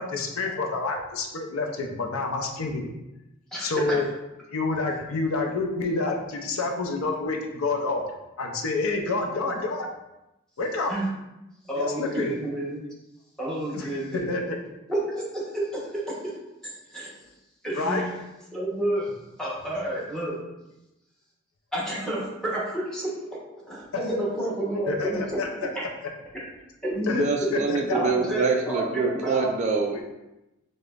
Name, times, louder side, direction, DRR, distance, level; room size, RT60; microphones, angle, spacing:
voice 1, 0.0-2.9 3.6-4.1 4.5-8.0 8.4-9.9 10.6-10.9 11.8-12.3 13.7-14.6 17.7-18.0 24.9-25.7 27.1-27.3 27.5-27.8 29.9-30.0, left 3 dB, 90° left, 3 dB, 0.5 m, -28 dB
voice 2, 11.7-12.8 13.4-14.3 14.9-16.3 16.6-17.2 17.6-18.2 18.5-19.1 19.4-20.4 21.7-23.1 23.6-25.2 25.7-25.8 26.8-27.5 27.9-29.5, right 1 dB, 5° left, -6 dB, 0.9 m, -30 dB
voice 3, 27.1-30.0, right 4 dB, 35° right, 2 dB, 0.3 m, -25 dB
4.9 x 2.1 x 2.4 m, 0.95 s
head